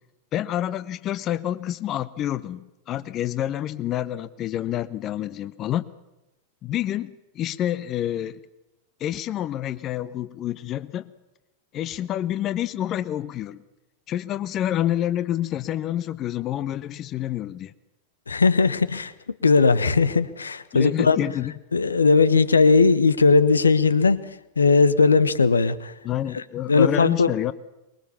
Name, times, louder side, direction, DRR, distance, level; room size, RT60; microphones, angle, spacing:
voice 1, 0.3-5.9 6.6-8.4 9.0-11.1 11.7-13.6 14.1-17.7 20.7-21.5 26.0-27.5, left 12 dB, 35° left, 15 dB, 0.9 m, -28 dB
voice 2, 18.3-19.1 19.4-21.2 21.7-24.2 24.6-25.9 26.3-26.4 26.7-27.3, left 4 dB, 75° left, 15 dB, 1.2 m, -18 dB
24.0 x 22.5 x 7.1 m, 0.96 s
figure-of-eight pair, 90°, 0 cm